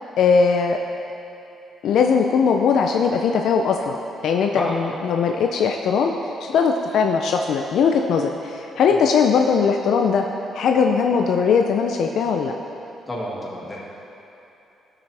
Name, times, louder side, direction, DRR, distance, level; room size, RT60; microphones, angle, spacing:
voice 1, 0.2-0.8 1.8-3.9 4.2-6.1 6.4-10.2 10.5-12.5, left 6 dB, 70° left, 3 dB, 0.4 m, -19 dB
voice 2, 4.5-5.0 13.1-13.8, equal, 20° left, -4 dB, 1.8 m, -30 dB
12.5 x 6.0 x 3.3 m, 2.9 s
cardioid pair, 90°, 0 cm